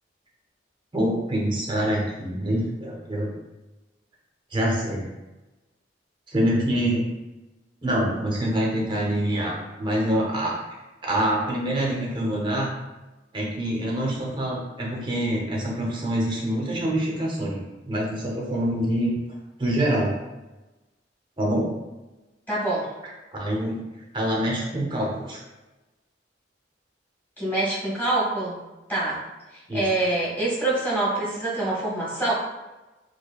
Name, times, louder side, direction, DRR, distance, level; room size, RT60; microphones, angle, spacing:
voice 1, 0.9-3.3 4.5-5.1 6.3-7.0 7.8-10.6 11.0-12.7 13.3-19.1 19.6-20.1 21.4-21.7 23.3-23.8 24.1-25.4 29.7-29.8, right 1 dB, 25° right, -3 dB, 0.8 m, -25 dB
voice 2, 22.5-22.9 27.4-28.6 28.9-29.2 29.7-32.3, right 2 dB, 10° left, -8 dB, 1.5 m, -25 dB
4.8 x 2.2 x 2.3 m, 1.1 s
head